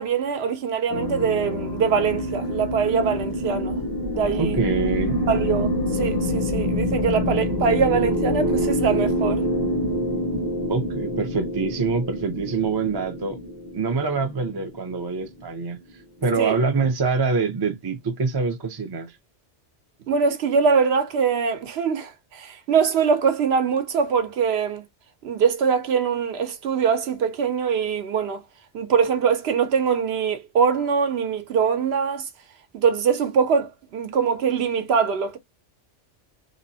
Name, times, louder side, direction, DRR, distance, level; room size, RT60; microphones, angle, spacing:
voice 1, 0.0-3.8 4.1-4.6 5.3-9.5 16.4-16.6 20.1-24.8 25.2-28.4 28.7-32.3 32.7-35.4, right 6 dB, 65° right, 0.8 m, -23 dB
sound 1, 0.9-15.5, left 1 dB, 30° left, 0.5 m, -26 dB
voice 2, 4.4-5.2 10.7-13.4 13.7-15.8 16.2-19.1, right 4 dB, 35° right, 0.4 m, -25 dB
2.8 x 2.1 x 2.6 m
omnidirectional pair, 1.2 m